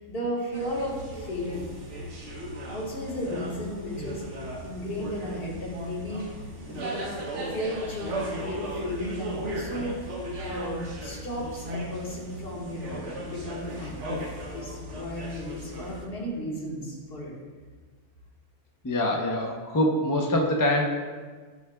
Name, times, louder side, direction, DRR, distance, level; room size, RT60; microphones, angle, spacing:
voice 1, 0.0-1.7 2.7-6.3 6.7-10.0 10.4-17.3, equal, 50° left, -4 dB, 1.5 m, -34 dB
sound 1, 0.5-16.1, right 1 dB, 70° right, 1.1 m, -37 dB
voice 2, 18.8-20.9, left 1 dB, 30° left, 0 dB, 0.3 m, -24 dB
11.0 x 4.6 x 2.2 m, 1.5 s
omnidirectional pair, 1.3 m